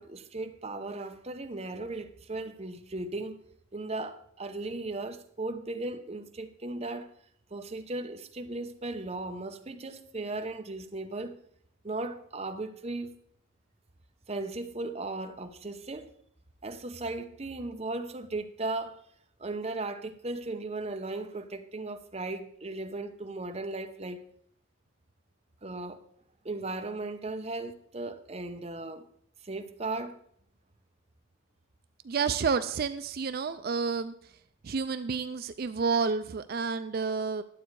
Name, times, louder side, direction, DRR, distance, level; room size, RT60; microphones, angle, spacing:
voice 1, 0.0-3.4 3.7-7.1 7.5-11.4 11.8-13.1 14.3-16.1 16.6-19.1 19.4-24.3 25.6-26.0 26.4-29.1 29.4-30.2, right 2 dB, 30° right, 0.8 m, -36 dB
voice 2, 32.0-34.1 34.6-37.4, right 5 dB, 45° right, 0.4 m, -30 dB
11.5 x 7.8 x 4.7 m
head